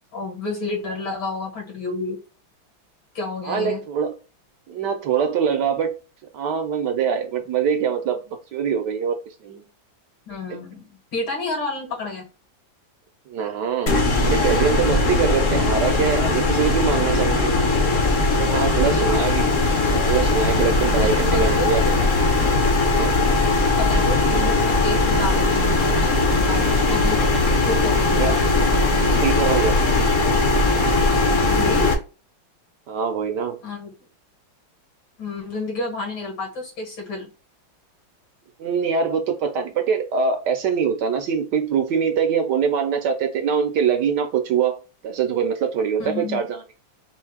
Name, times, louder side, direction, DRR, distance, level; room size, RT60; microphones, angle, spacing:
voice 1, 0.1-2.2 3.1-3.8 10.3-12.2 18.6-19.2 21.0-21.8 23.8-26.2 26.4-27.2 27.7-28.5 31.3-31.9 33.6-33.9 35.2-37.3 46.0-46.5, left 3 dB, 75° left, 2.6 m, -30 dB
voice 2, 3.4-4.2 4.7-6.0 6.3-9.7 13.3-13.9 14.2-17.5 18.4-19.4 19.9-21.8 22.9-23.2 28.1-28.6 28.9-29.8 30.7-30.8 32.9-33.6 38.6-46.6, right 7 dB, 70° right, 1.2 m, -23 dB
sound 1, 13.9-31.9, left 2 dB, 50° left, 1.0 m, -19 dB
4.5 x 2.7 x 3.5 m
omnidirectional pair, 2.2 m